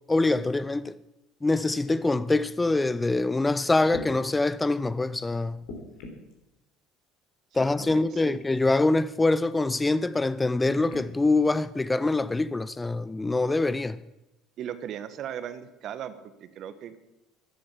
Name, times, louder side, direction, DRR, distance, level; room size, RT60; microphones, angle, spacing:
voice 1, 0.1-1.0 1.4-5.6 7.5-14.0, left 2 dB, 15° left, 0.6 m, -24 dB
sound 1, 3.9-4.1 5.6-6.3 7.6-8.0 8.6-8.7 10.6-11.1 12.0-12.1, left 3 dB, 65° left, 3.5 m, -40 dB
voice 2, 7.8-8.4 14.6-17.0, right 9 dB, 50° right, 1.3 m, -38 dB
14.0 x 12.0 x 7.2 m
figure-of-eight pair, 60°, 0 cm